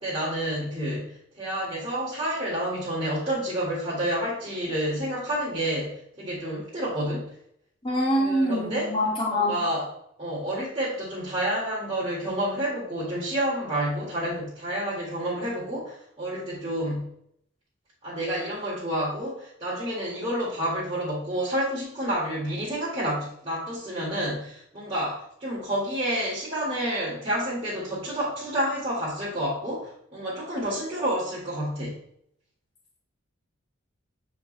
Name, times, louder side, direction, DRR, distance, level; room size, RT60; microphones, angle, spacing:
voice 1, 0.0-7.3 8.1-8.9 9.3-17.1 18.0-32.0, right 1 dB, 30° right, -7 dB, 2.0 m, -29 dB
voice 2, 7.8-9.6, left 1 dB, 25° left, -4 dB, 1.9 m, -24 dB
8.0 x 4.6 x 3.3 m, 0.71 s
head